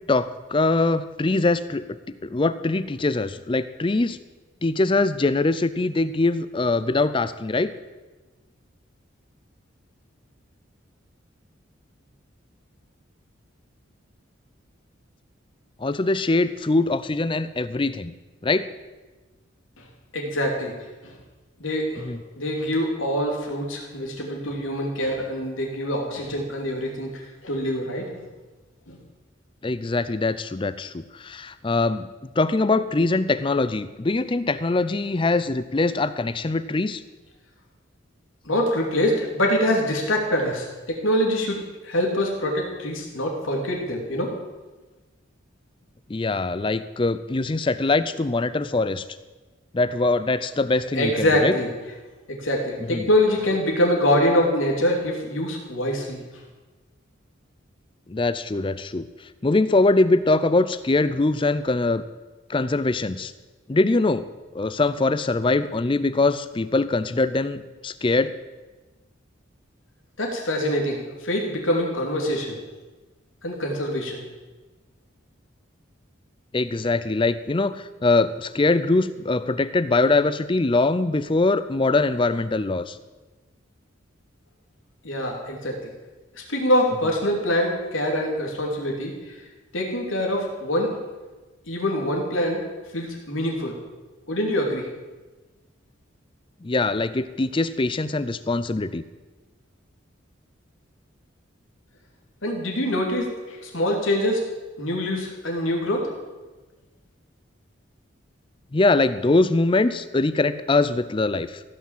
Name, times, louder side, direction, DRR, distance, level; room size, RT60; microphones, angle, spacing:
voice 1, 0.1-4.2 4.6-7.7 15.8-18.1 18.4-18.7 22.0-22.2 29.6-32.1 32.4-37.0 46.1-49.0 49.7-51.5 52.9-53.1 58.1-59.0 59.4-62.0 62.5-63.3 63.7-64.3 64.5-68.3 76.5-83.0 96.6-99.0 108.7-111.6, left 3 dB, 25° left, 14 dB, 0.5 m, -22 dB
voice 2, 20.1-20.7 21.0-21.2 21.6-28.2 28.9-29.0 38.4-44.3 50.9-51.7 52.3-56.2 70.2-72.6 73.4-74.2 85.0-85.8 86.3-89.3 89.7-90.9 91.7-92.6 92.9-93.7 94.3-94.9 102.4-104.4 104.8-106.1, left 1 dB, 85° left, 1 dB, 2.7 m, -24 dB
15.5 x 6.0 x 7.4 m, 1.2 s
head